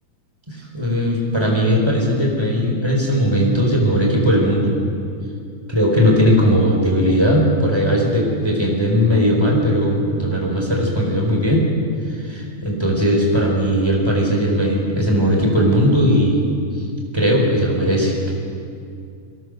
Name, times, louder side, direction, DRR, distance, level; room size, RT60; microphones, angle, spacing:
voice 1, 0.5-4.8 5.7-11.7 12.1-16.4 17.1-18.3, equal, 10° right, -1 dB, 4.0 m, -18 dB
22.5 x 18.0 x 6.6 m, 2.4 s
omnidirectional pair, 3.7 m